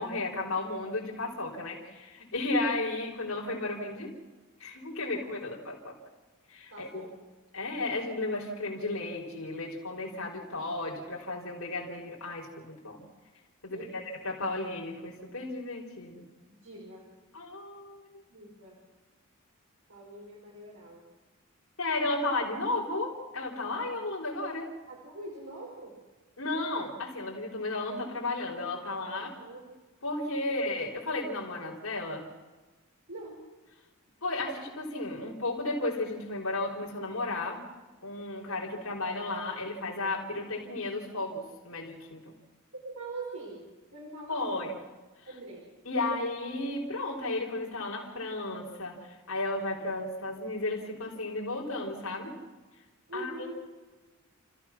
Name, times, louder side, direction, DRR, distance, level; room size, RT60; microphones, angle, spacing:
voice 1, 0.0-4.1 4.6-5.9 6.5-7.0 7.5-13.1 13.6-13.9 14.2-16.3 17.3-18.2 21.8-24.7 26.4-29.3 30.0-32.3 34.2-37.6 38.0-42.4 44.3-44.8 45.9-52.4 53.1-53.5, left 2 dB, 75° left, -3 dB, 4.0 m, -34 dB
voice 2, 6.7-7.1 13.7-14.0 16.5-17.0 18.3-18.7 19.9-21.0 24.9-26.0 29.1-29.7 30.6-30.7 33.1-33.4 42.7-44.7 45.3-45.6 53.1-53.5, right 2 dB, 80° right, -3 dB, 4.7 m, -43 dB
30.0 x 15.0 x 6.1 m, 1.3 s
head